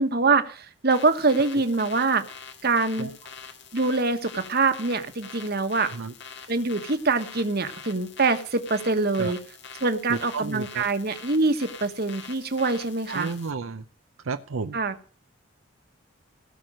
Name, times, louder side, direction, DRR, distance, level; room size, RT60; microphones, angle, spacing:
voice 1, 0.0-2.2 2.6-3.1 3.7-5.9 6.5-9.4 9.8-13.3 14.7-14.9, right 3 dB, 50° right, 8 dB, 1.3 m, -24 dB
sound 1, 0.9-13.5, left 6 dB, 60° left, 1.9 m, -44 dB
voice 2, 5.8-6.1 9.2-9.3 10.1-10.8 13.1-13.8 14.2-14.8, right 4 dB, 80° right, 8 dB, 0.6 m, -32 dB
17.0 x 6.1 x 6.3 m, 0.40 s
head